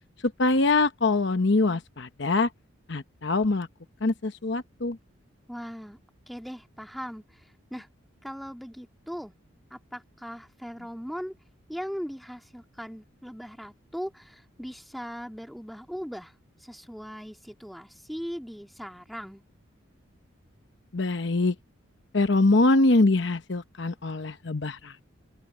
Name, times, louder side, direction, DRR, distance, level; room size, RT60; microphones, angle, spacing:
voice 1, 0.2-2.5 2.9-3.7 4.0-5.0 20.9-21.5 22.1-25.0, left 2 dB, 60° left, 0.9 m, -23 dB
voice 2, 5.5-6.0 6.3-7.9 8.2-9.3 9.7-11.4 11.7-16.3 16.6-19.4, equal, ahead, 1.9 m, -39 dB
head